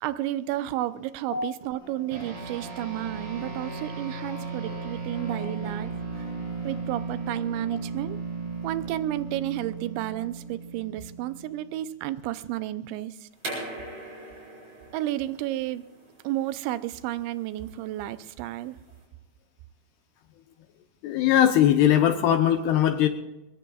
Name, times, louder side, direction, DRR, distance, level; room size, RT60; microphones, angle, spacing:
voice 1, 0.0-5.9 6.2-6.3 6.6-8.2 8.6-13.2 14.9-15.8 16.2-18.8, right 14 dB, 85° right, 13 dB, 3.0 m, -32 dB
sound 1, 1.8-6.8, left 6 dB, 55° left, 3.8 m, -46 dB
sound 2, 2.1-11.8, right 4 dB, 60° right, 6.3 m, -36 dB
sound 3, 13.4-19.0, right 1 dB, 35° right, 7.2 m, -41 dB
voice 2, 21.0-23.1, left 10 dB, 75° left, 7 dB, 2.7 m, -20 dB
22.5 x 22.0 x 2.4 m, 0.98 s
omnidirectional pair, 5.1 m